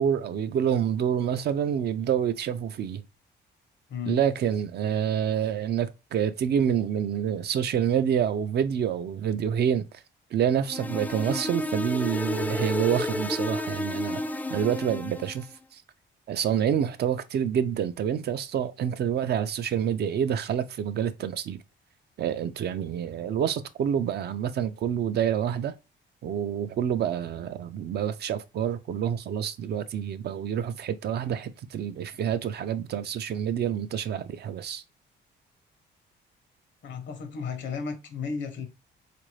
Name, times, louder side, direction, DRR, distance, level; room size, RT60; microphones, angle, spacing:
voice 1, 0.0-3.0 4.1-9.8 10.3-14.2 14.5-15.5 15.7-15.8 16.3-21.6 22.2-25.7 26.2-34.8, right 8 dB, 55° right, 0.4 m, -27 dB
sound 1, 10.7-15.4, left 2 dB, 10° left, 0.3 m, -31 dB
voice 2, 36.8-38.7, left 5 dB, 65° left, 0.9 m, -34 dB
3.8 x 2.5 x 3.1 m
cardioid pair, 90°, 20 cm